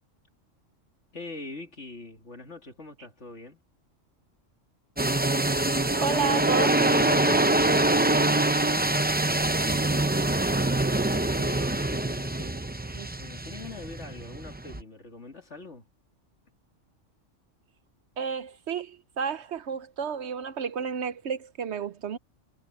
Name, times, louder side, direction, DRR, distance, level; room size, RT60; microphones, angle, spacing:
voice 1, 1.1-3.6 8.1-12.6 13.2-15.9, left 3 dB, 65° left, 3.3 m, -43 dB
sound 1, 5.0-14.8, right 2 dB, 10° right, 0.5 m, -25 dB
voice 2, 6.0-7.6 12.9-13.1 18.2-22.2, right 6 dB, 65° right, 1.0 m, -31 dB
omnidirectional pair, 1.3 m